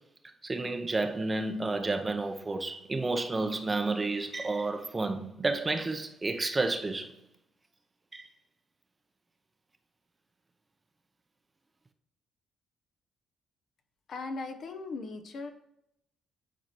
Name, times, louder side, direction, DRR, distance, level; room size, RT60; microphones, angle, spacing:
voice 1, 0.4-7.1 8.1-8.3, right 3 dB, 25° right, 0.6 m, -31 dB
voice 2, 14.1-15.5, left 3 dB, 60° left, 0.7 m, -38 dB
9.1 x 4.3 x 3.0 m
cardioid pair, 90°, 0 cm